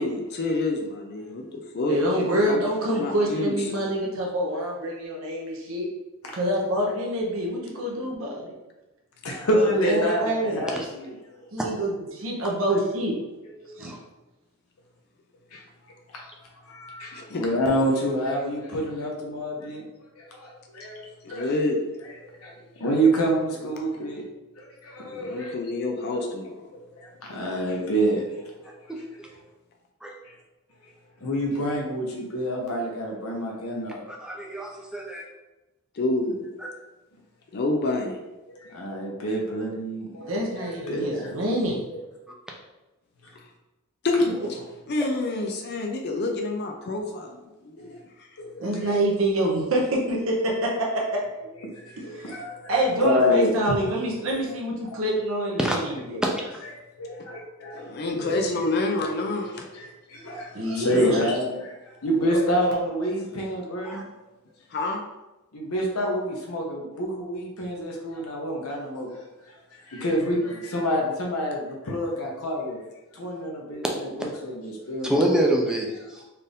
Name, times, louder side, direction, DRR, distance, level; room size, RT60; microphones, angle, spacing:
voice 1, 0.0-2.6 3.0-3.9 17.1-17.5 21.2-21.8 25.1-26.6 35.9-36.5 37.5-38.2 43.3-43.5 44.0-44.6 44.9-48.3 57.7-59.9 60.4-60.5 62.2-62.6 64.7-65.0 70.2-70.6, left 2 dB, 50° left, 3 dB, 0.4 m, -28 dB
voice 2, 1.9-5.9 6.3-8.5 9.5-10.7 11.5-13.1 13.8-13.9 40.3-41.8 48.6-51.0 52.1-52.4 52.7-56.2 58.1-58.3 60.5-61.3, right 1 dB, 65° right, -3 dB, 0.8 m, -26 dB
voice 3, 9.2-11.1 13.6-13.7 15.5-15.6 16.7-19.8 20.3-21.0 21.3-21.4 22.4-22.5 22.8-24.2 24.8-25.5 27.0-28.2 31.2-34.0 38.7-40.3 40.6-41.3 48.4-48.9 51.9-52.7 53.0-53.5 57.0-57.9 58.3-58.4 60.1-61.5 62.0-64.0 65.5-69.1 69.9-72.8 73.1-73.8 74.2-75.1, equal, 80° left, -1 dB, 0.9 m, -27 dB
voice 4, 28.9-29.3 30.0-30.1 34.1-35.2 55.6-55.8 56.2-56.6 63.8-64.0 75.0-76.2, right 1 dB, 5° right, -1 dB, 0.5 m, -26 dB
4.3 x 2.5 x 3.5 m, 1.0 s
head